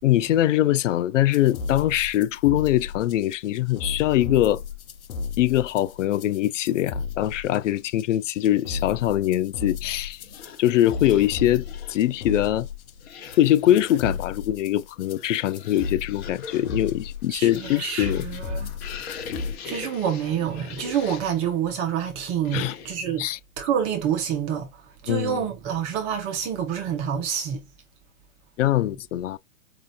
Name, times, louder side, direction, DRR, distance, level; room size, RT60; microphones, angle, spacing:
voice 1, 0.0-4.6 5.4-10.2 10.6-12.7 13.4-18.2 22.5-22.7 23.2-23.4 25.1-25.4 28.6-29.4, left 13 dB, 60° left, 0.5 m, -22 dB
sound 1, 1.3-19.6, left 5 dB, 80° left, 0.8 m, -34 dB
sound 2, 10.2-12.1 13.0-14.2 15.0-21.5 22.4-23.1, left 6 dB, 45° left, 1.2 m, -41 dB
voice 2, 17.3-18.7 19.6-23.3 23.6-27.7, right 8 dB, 15° right, 0.4 m, -27 dB
4.9 x 2.8 x 2.4 m
hypercardioid pair, 130°, 42 cm